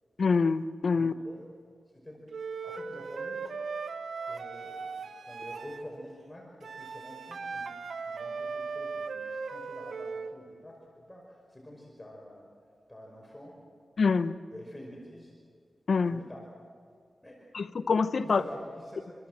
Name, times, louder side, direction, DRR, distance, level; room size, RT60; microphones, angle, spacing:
voice 1, 0.2-1.1 14.0-14.3 15.9-16.2 17.5-18.4, left 4 dB, 70° left, 12 dB, 0.9 m, -25 dB
voice 2, 0.9-1.5 1.9-2.2 2.6-3.4 4.3-12.5 12.9-13.6 14.5-15.3 16.1-16.6 17.2-17.4 18.2-19.3, equal, 15° left, -1 dB, 5.4 m, -47 dB
Wind instrument woodwind instrument, 2.3-5.8 6.6-10.4, right 4 dB, 85° right, 1.4 m, -38 dB
27.0 x 26.5 x 7.5 m, 2.1 s
cardioid pair, 70°, 0 cm